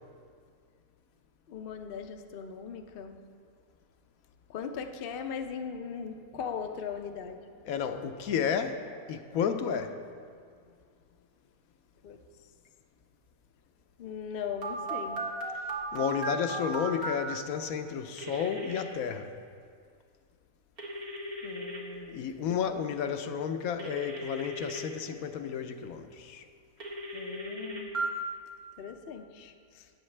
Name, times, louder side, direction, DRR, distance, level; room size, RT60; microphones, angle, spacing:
voice 1, 1.5-3.2 4.5-7.4 12.0-12.2 14.0-15.2 21.4-22.2 22.5-22.6 27.1-28.0 28.8-29.9, left 6 dB, 55° left, 0.6 m, -39 dB
voice 2, 7.6-10.0 15.9-19.3 22.1-26.4, left 7 dB, 75° left, 1.0 m, -32 dB
Telephone, 14.6-17.2 18.2-18.8 20.8-21.8 23.8-24.8 26.8-28.1, right 2 dB, 75° right, 2.0 m, -36 dB
17.0 x 8.1 x 3.3 m
omnidirectional pair, 1.6 m